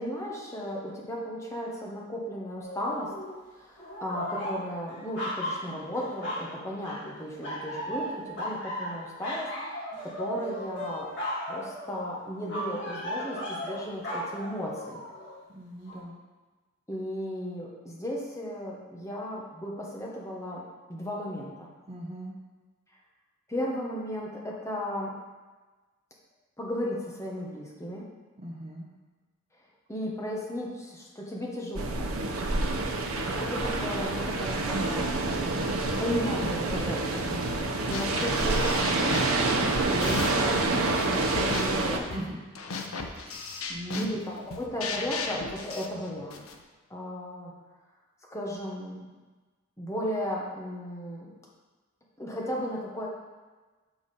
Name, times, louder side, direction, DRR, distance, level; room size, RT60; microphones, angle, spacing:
voice 1, 0.0-3.1 3.6-9.8 10.0-11.1 11.5-15.0 16.9-21.7 23.5-25.1 26.6-28.1 29.9-32.1 33.3-35.1 35.4-37.6 37.9-42.1 44.0-46.4 46.9-47.5 48.3-49.1 49.8-51.3 52.2-53.1, equal, 15° left, -3 dB, 0.9 m, -35 dB
sound 1, 2.6-3.4 3.8-6.5 6.8-7.1 7.4-15.3 15.9-16.0, equal, 55° left, 2.2 m, -36 dB
voice 2, 15.5-16.2 21.9-22.4 28.4-28.9 39.9-40.2 42.1-42.4 42.7-44.1, right 1 dB, 30° right, -2 dB, 0.8 m, -39 dB
sound 2, 31.8-42.0, right 2 dB, 90° right, 0.8 m, -27 dB
sound 3, 37.3-37.6 37.9-40.5 40.9-46.6, left 4 dB, 85° left, 0.7 m, -36 dB
7.2 x 4.9 x 4.2 m, 1.3 s
head